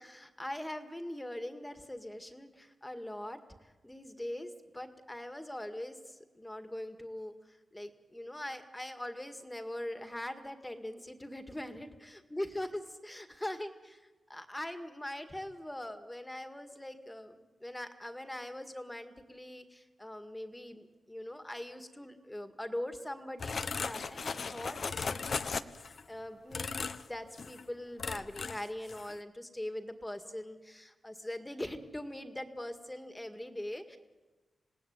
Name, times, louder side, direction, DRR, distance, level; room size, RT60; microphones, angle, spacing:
voice 1, 0.0-13.7 14.3-34.0, left 1 dB, 10° left, 7 dB, 2.0 m, -42 dB
sound 1, 23.4-26.0 26.5-27.1 27.4-27.6 28.0-28.6 28.9-29.1, left 5 dB, 55° left, 0.9 m, -37 dB
27.5 x 18.0 x 9.5 m, 1.2 s
wide cardioid pair, 120°, 0 cm